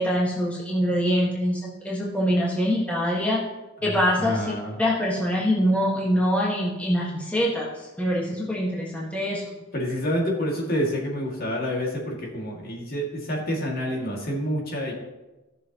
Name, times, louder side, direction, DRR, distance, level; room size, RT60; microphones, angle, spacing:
voice 1, 0.0-3.4 3.8-4.5 4.8-9.5, equal, 5° left, -5 dB, 1.6 m, -24 dB
voice 2, 3.8-4.8 9.7-14.9, equal, 50° left, -2 dB, 2.3 m, -28 dB
16.0 x 6.7 x 3.0 m, 1.1 s
head